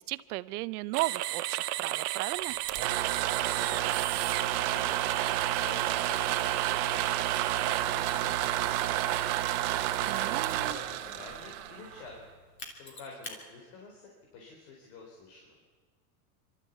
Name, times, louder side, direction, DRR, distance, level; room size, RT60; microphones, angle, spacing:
voice 1, 0.0-2.6 10.1-10.8, right 19 dB, 80° right, 17 dB, 0.8 m, -35 dB
sound 1, 0.9-7.8, right 15 dB, 35° right, 0.7 m, -35 dB
sound 2, 2.5-12.3, right 13 dB, 55° right, 1.3 m, -30 dB
voice 2, 3.6-4.0 4.4-7.3 7.6-9.2 9.9-12.3 12.8-15.6, left 3 dB, 65° left, -1 dB, 4.2 m, -49 dB
Mechanisms, 4.2-4.3 5.2-6.8 7.3-10.8 12.6-13.4, left 3 dB, 25° left, 2.9 m, -47 dB
26.0 x 13.0 x 8.2 m, 1.5 s
supercardioid pair, 150°, 44 cm